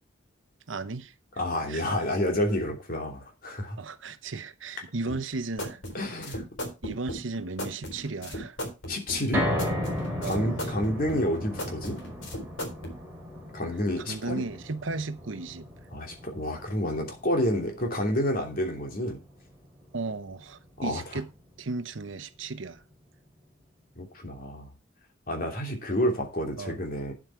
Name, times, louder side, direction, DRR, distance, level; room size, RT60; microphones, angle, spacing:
voice 1, 0.7-1.1 1.7-1.9 3.8-5.8 6.8-8.6 10.2-10.8 14.1-15.7 19.9-21.3 21.6-22.8 26.6-26.8, right 3 dB, 75° right, 0.9 m, -35 dB
voice 2, 1.4-3.8 5.9-6.4 8.9-9.5 10.2-12.0 13.5-14.4 15.9-19.2 20.8-21.2 24.0-24.7 25.3-27.1, left 1 dB, 45° left, 2.9 m, -29 dB
sound 1, 5.1-13.0, equal, 70° left, 3.9 m, -37 dB
sound 2, 9.3-21.6 22.0-22.1 22.5-22.6, left 1 dB, 10° right, 3.5 m, -36 dB
9.5 x 7.9 x 4.6 m
head